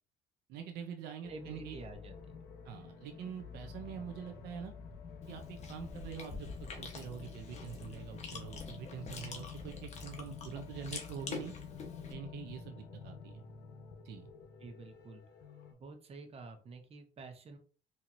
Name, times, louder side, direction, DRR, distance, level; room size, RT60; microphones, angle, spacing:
voice 1, 0.5-1.8 2.6-4.7 5.3-11.5 12.1-13.4 14.0-14.3, right 8 dB, 85° right, 5 dB, 0.6 m, -45 dB
sound 1, 1.2-15.7, left 6 dB, 65° left, 1.0 m, -49 dB
voice 2, 1.3-2.4 14.6-15.2 15.7-17.6, right 3 dB, 35° right, 5 dB, 0.9 m, -49 dB
Chewing mastication, 5.2-12.1, left 4 dB, 40° left, 1.0 m, -47 dB
4.5 x 2.8 x 2.6 m, 0.38 s
cardioid pair, 110°, 17 cm